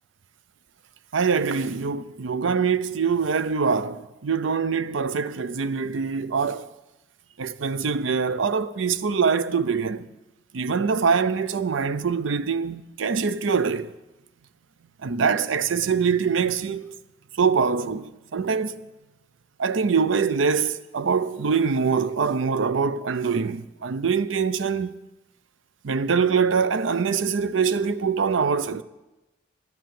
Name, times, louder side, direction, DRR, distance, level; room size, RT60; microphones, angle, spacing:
voice 1, 1.1-6.7 7.4-10.1 10.5-13.9 15.0-16.9 17.3-18.8 19.6-25.0 25.8-28.8, right 5 dB, 80° right, 0.5 m, -24 dB
10.5 x 9.4 x 7.6 m
head